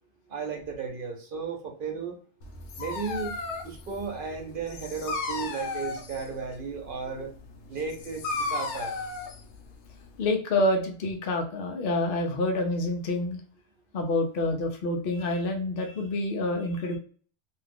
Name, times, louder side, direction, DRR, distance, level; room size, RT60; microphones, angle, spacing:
voice 1, 0.3-2.2 2.8-3.4 3.6-7.3 7.7-8.9, right 5 dB, 55° right, 3 dB, 0.9 m, -34 dB
Dog, 2.4-10.3, left 3 dB, 85° left, 0.9 m, -35 dB
voice 2, 10.2-13.4 13.9-17.0, left 2 dB, 60° left, 3 dB, 0.8 m, -27 dB
2.5 x 2.3 x 3.4 m, 0.42 s
omnidirectional pair, 1.2 m